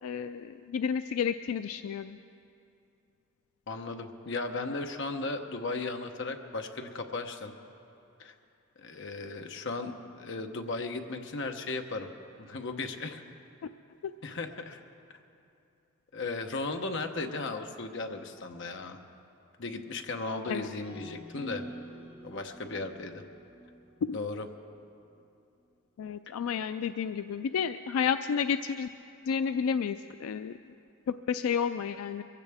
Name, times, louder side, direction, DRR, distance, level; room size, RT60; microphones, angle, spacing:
voice 1, 0.0-2.2 20.5-20.8 24.0-24.2 26.0-28.9 29.2-30.6 31.1-32.2, left 7 dB, 80° left, 10 dB, 0.3 m, -31 dB
voice 2, 3.7-7.5 8.2-8.3 8.8-12.1 12.4-13.2 14.2-14.8 16.1-19.0 19.6-21.6 22.2-23.2 24.1-24.5, left 3 dB, 55° left, 5 dB, 0.9 m, -36 dB
sound 1, 20.8-25.0, right 1 dB, 15° right, 4.3 m, -48 dB
23.0 x 15.5 x 3.5 m, 2.7 s
head